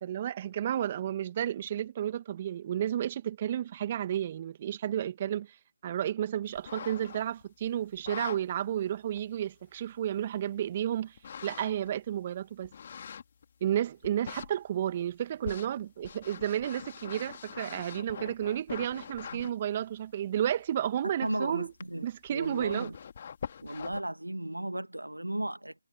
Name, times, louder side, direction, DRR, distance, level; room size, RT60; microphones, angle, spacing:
voice 1, 0.0-5.5 5.8-11.1 11.4-12.7 13.6-21.7 22.0-22.9, right 10 dB, 30° right, 1.8 m, -32 dB
sound 1, 6.6-7.4 7.9-8.4 9.2-9.3 11.2-11.9 12.6-13.5 14.0-14.5 15.4-19.5 21.8-21.9 22.3-24.0, left 7 dB, 40° left, 3.1 m, -43 dB
voice 2, 21.2-22.9 23.6-25.8, right 1 dB, 90° right, 1.6 m, -35 dB
figure-of-eight pair, 155°, 0 cm